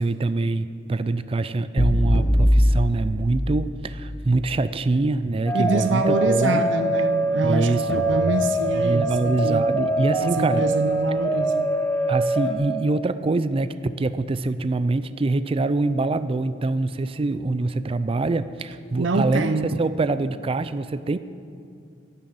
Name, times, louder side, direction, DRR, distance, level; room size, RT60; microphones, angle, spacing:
voice 1, 0.0-6.6 7.4-8.0 8.7-10.7 12.1-21.2, right 3 dB, 30° right, 13 dB, 0.4 m, -24 dB
sound 1, 1.8-4.0, equal, 65° left, 1.5 m, -20 dB
sound 2, 5.5-12.5, right 1 dB, 10° left, 1.5 m, -24 dB
voice 2, 5.5-9.7 10.2-11.7 19.0-19.8, right 2 dB, 75° right, 8 dB, 0.6 m, -25 dB
11.5 x 11.0 x 7.8 m, 2.4 s
head